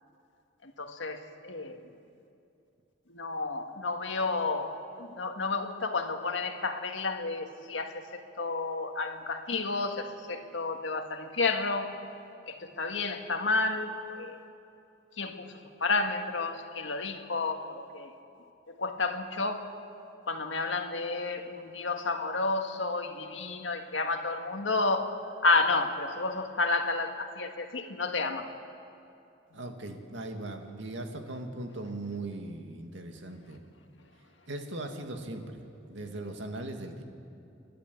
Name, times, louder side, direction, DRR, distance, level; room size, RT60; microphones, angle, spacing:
voice 1, 0.6-1.8 3.1-11.9 12.5-14.4 15.1-18.1 18.7-19.7 20.2-25.1 25.4-28.5 29.5-29.6, left 3 dB, 85° left, 5 dB, 1.8 m, -31 dB
voice 2, 29.5-33.6 34.5-37.0, right 2 dB, 75° right, 4 dB, 2.1 m, -39 dB
29.5 x 12.0 x 9.4 m, 2.6 s
head